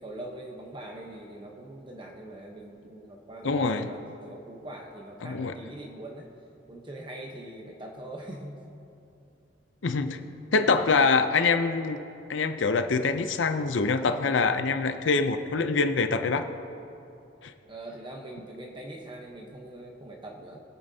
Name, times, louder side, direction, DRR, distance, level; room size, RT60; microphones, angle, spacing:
voice 1, 0.0-6.3 6.7-8.6 17.6-20.6, right 1 dB, 25° right, 0 dB, 0.9 m, -42 dB
voice 2, 3.4-3.9 5.2-5.5 9.8-10.2 10.5-12.0 12.3-16.5 17.4-17.5, left 4 dB, 80° left, 8 dB, 0.6 m, -25 dB
22.0 x 8.7 x 2.8 m, 2.7 s
head